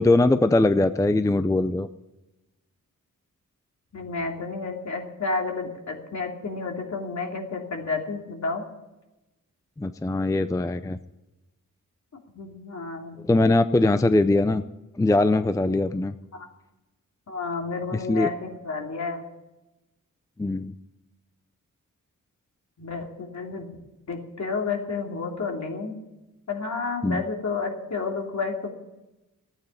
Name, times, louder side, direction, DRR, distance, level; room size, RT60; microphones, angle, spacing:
voice 1, 0.0-1.9 9.8-11.0 13.2-14.6 15.0-16.1 18.1-18.3 20.4-20.7 27.0-27.2, left 2 dB, 10° left, 11 dB, 0.5 m, -21 dB
voice 2, 3.9-8.6 12.3-13.2 16.3-16.5 17.3-19.2 22.8-23.7 24.1-26.0 26.5-28.7, left 4 dB, 60° left, 1 dB, 3.0 m, -31 dB
14.0 x 9.2 x 9.7 m, 0.99 s
wide cardioid pair, 90°, 32 cm